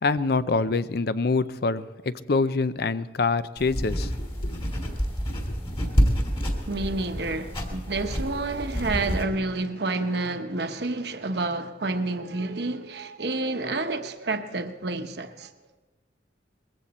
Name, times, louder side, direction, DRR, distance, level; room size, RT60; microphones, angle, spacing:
voice 1, 0.0-4.6, left 3 dB, 60° left, 0.5 m, -25 dB
sound 1, 3.6-9.2, equal, 30° left, 2.4 m, -28 dB
voice 2, 6.7-15.5, right 3 dB, 65° right, 1.0 m, -29 dB
20.5 x 15.5 x 4.3 m
head